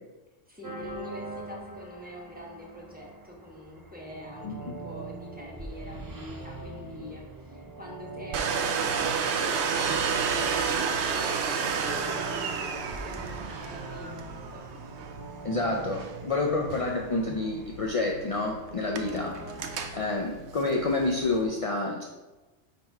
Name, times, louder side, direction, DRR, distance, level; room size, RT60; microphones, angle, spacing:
voice 1, 0.5-10.6 11.0-14.9 19.0-19.2 19.9-20.1, equal, 10° right, -3 dB, 1.2 m, -45 dB
sound 1, 0.6-20.2, right 2 dB, 30° right, 0.4 m, -43 dB
voice 2, 4.4-4.8 15.4-19.4 19.9-22.0, left 2 dB, 55° left, 0 dB, 0.4 m, -28 dB
Domestic sounds home sounds, 8.3-21.4, right 6 dB, 70° right, 0.8 m, -32 dB
4.4 x 4.2 x 5.3 m, 1.1 s
omnidirectional pair, 1.2 m